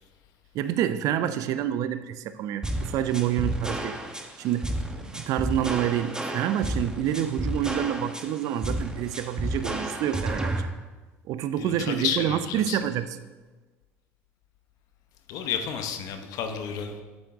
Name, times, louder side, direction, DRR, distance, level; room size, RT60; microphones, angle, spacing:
voice 1, 0.5-4.0 4.4-4.7 5.1-10.5 11.3-13.2, right 11 dB, 55° right, 0.4 m, -27 dB
sound 1, 2.6-10.6, right 1 dB, 10° right, 1.0 m, -31 dB
voice 2, 11.6-12.8 15.3-16.9, left 8 dB, 60° left, 0.8 m, -31 dB
7.6 x 6.9 x 3.5 m
hypercardioid pair, 70°, 7 cm